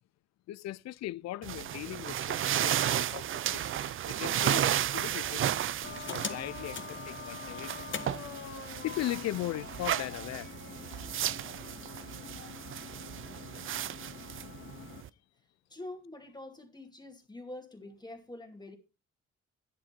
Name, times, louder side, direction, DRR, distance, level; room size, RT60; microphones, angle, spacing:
voice 1, 0.5-5.5 6.1-7.8 8.8-10.5, left 15 dB, 60° left, 0.5 m, -38 dB
sound 1, 1.4-15.1, right 11 dB, 45° right, 0.4 m, -34 dB
sound 2, 5.8-15.0, left 6 dB, 40° left, 1.3 m, -43 dB
voice 2, 15.7-18.8, left 2 dB, 15° left, 2.3 m, -45 dB
10.5 x 6.5 x 4.4 m
cardioid pair, 90°, 30 cm